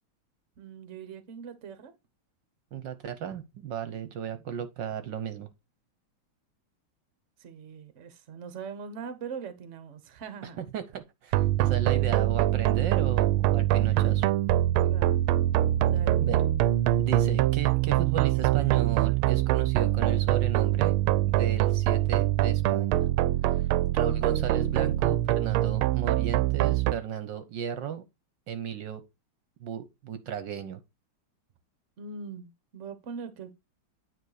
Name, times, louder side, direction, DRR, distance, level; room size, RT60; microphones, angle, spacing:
voice 1, 0.6-1.9 7.4-10.6 11.5-11.6 14.9-15.2 15.9-16.3 32.0-33.6, right 6 dB, 45° right, 1.1 m, -41 dB
voice 2, 2.7-5.5 10.4-14.3 16.2-16.4 17.0-20.9 21.3-23.1 23.5-23.6 23.9-28.0 28.5-29.0 29.6-30.8, right 8 dB, 70° right, 1.4 m, -34 dB
sound 1, 11.3-26.9, right 14 dB, 90° right, 1.5 m, -24 dB
9.6 x 4.1 x 4.9 m
omnidirectional pair, 2.3 m